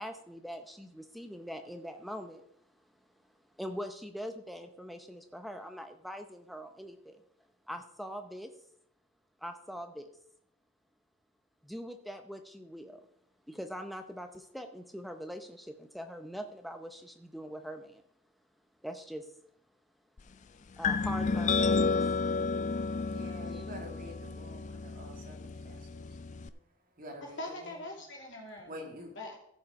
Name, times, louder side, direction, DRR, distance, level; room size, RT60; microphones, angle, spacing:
voice 1, 0.0-2.4 3.6-7.2 7.7-8.5 9.4-10.1 11.6-13.1 13.5-18.0 18.8-19.3 20.8-21.7 23.5-23.6, equal, ahead, 6 dB, 0.7 m, -42 dB
sound 1, 20.8-26.5, left 4 dB, 35° left, 0.3 m, -31 dB
voice 2, 23.0-26.6 26.9-27.8 28.7-29.1, left 1 dB, 40° right, 2 dB, 2.0 m, -48 dB
voice 3, 27.2-28.9 29.1-29.3, left 1 dB, 55° left, -2 dB, 2.9 m, -42 dB
15.0 x 5.5 x 4.8 m, 0.73 s
head